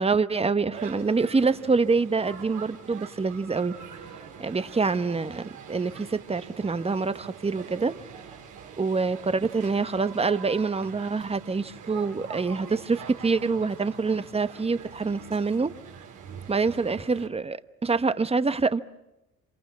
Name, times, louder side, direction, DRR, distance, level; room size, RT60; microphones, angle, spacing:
voice 1, 0.0-3.7 4.4-7.9 8.8-15.7 16.5-18.8, right 4 dB, 20° right, 1.0 m, -26 dB
sound 1, 0.7-17.3, right 7 dB, 85° right, 4.2 m, -44 dB
27.0 x 25.0 x 7.4 m
cardioid pair, 90°, 30 cm